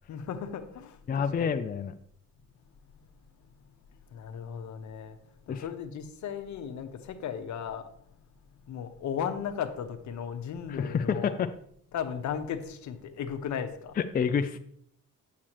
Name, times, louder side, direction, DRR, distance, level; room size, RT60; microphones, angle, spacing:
voice 1, 0.1-1.6 4.1-5.2 5.5-7.9 8.7-11.4 11.9-14.0, left 8 dB, 70° left, 0.9 m, -36 dB
voice 2, 1.1-1.9 5.5-5.6 10.7-11.5 14.0-14.6, left 6 dB, 30° left, 0.4 m, -28 dB
8.3 x 7.4 x 3.0 m
cardioid pair, 90°, 30 cm